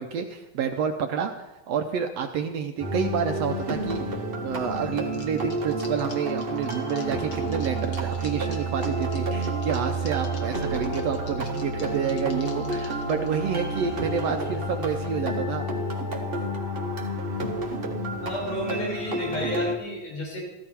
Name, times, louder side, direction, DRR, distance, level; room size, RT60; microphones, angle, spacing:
voice 1, 0.0-1.3 1.7-4.0 4.4-15.7, right 7 dB, 70° right, 5 dB, 1.6 m, -29 dB
sound 1, 2.8-19.7, right 1 dB, 40° right, 0.8 m, -30 dB
sound 2, 5.1-13.3, left 4 dB, 45° left, 1.8 m, -47 dB
sound 3, 6.9-16.9, left 6 dB, 60° left, 2.4 m, -43 dB
voice 2, 18.2-20.4, left 1 dB, 85° left, -4 dB, 6.9 m, -31 dB
15.5 x 14.0 x 4.4 m, 0.99 s
omnidirectional pair, 3.6 m